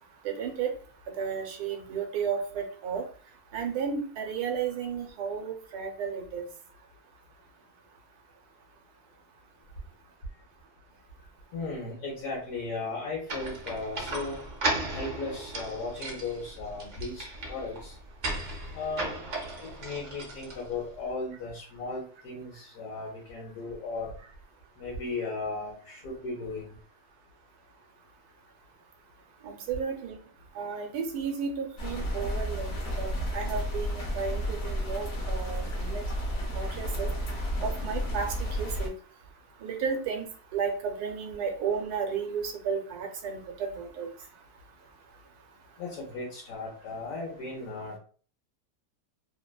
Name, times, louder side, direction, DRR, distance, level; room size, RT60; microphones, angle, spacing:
voice 1, 0.2-0.7 1.2-3.0 3.5-6.4 29.4-30.2 30.6-36.0 36.6-37.1 37.6-38.3 38.6-38.9 39.6-40.3 40.5-44.1, right 6 dB, 80° right, 3 dB, 1.1 m, -33 dB
voice 2, 11.5-14.4 14.9-17.9 18.7-19.2 19.6-24.1 24.8-26.8 45.8-48.0, left 3 dB, 80° left, -3 dB, 1.3 m, -36 dB
sound 1, 13.3-20.9, right 2 dB, 65° right, 0.4 m, -36 dB
sound 2, 31.8-38.9, equal, 55° left, 0.8 m, -32 dB
3.1 x 2.1 x 2.2 m, 0.42 s
omnidirectional pair, 1.6 m